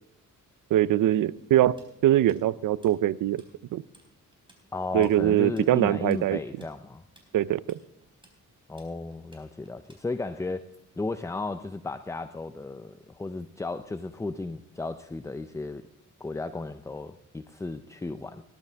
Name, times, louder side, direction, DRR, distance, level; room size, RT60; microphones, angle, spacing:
voice 1, 0.7-1.8 2.0-3.4 3.7-3.8 4.9-6.4 7.3-7.8, right 13 dB, 75° right, 19 dB, 0.5 m, -22 dB
Tools, 1.8-3.5 3.8-4.1 4.3-10.4, right 1 dB, 15° right, 4.0 m, -58 dB
voice 2, 4.7-7.0 8.7-10.7 11.0-15.8 16.2-18.4, left 3 dB, 10° left, 11 dB, 0.4 m, -34 dB
18.5 x 12.0 x 3.4 m, 0.84 s
cardioid pair, 110°, 32 cm